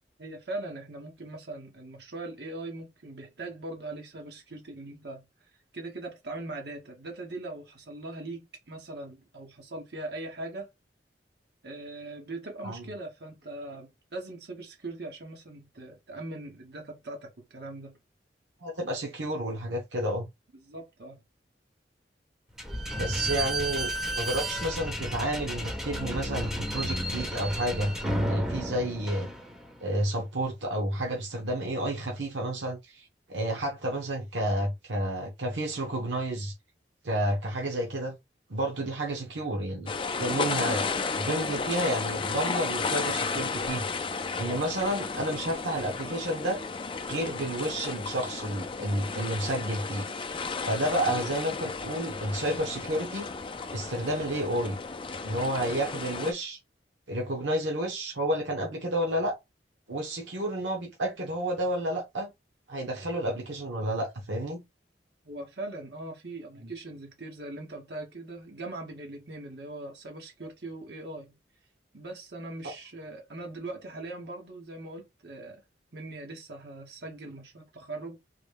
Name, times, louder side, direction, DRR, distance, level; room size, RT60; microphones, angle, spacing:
voice 1, 0.2-5.2 5.7-10.7 11.6-18.0 20.5-21.2 65.2-71.3 71.9-75.6 75.9-78.2, right 2 dB, 65° right, 1.2 m, -40 dB
voice 2, 18.6-20.3 23.0-29.3 29.8-36.5 37.0-38.2 38.5-39.9 40.2-40.9 41.2-43.9 44.4-46.6 47.1-50.1 50.6-53.3 53.7-54.8 55.2-56.6 57.1-59.4 59.9-62.3 62.7-64.6, right 1 dB, 85° right, 0.9 m, -30 dB
Slam / Squeak, 22.6-29.9, right 1 dB, 5° right, 1.2 m, -33 dB
sound 1, 39.9-56.3, left 4 dB, 30° left, 0.4 m, -33 dB
3.9 x 2.3 x 3.4 m
head